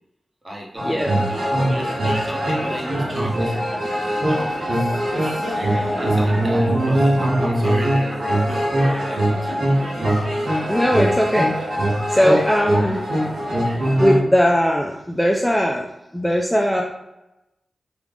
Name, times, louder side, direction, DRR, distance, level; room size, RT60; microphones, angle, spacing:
voice 1, 0.4-9.7, equal, 30° right, -3 dB, 1.1 m, -34 dB
sound 1, 0.8-14.2, right 1 dB, 85° right, 1.1 m, -21 dB
voice 2, 10.7-11.5 12.1-13.0 14.0-15.9 16.1-16.8, equal, 5° left, 0 dB, 0.4 m, -19 dB
3.2 x 2.4 x 3.4 m, 0.94 s
cardioid pair, 50°, 0 cm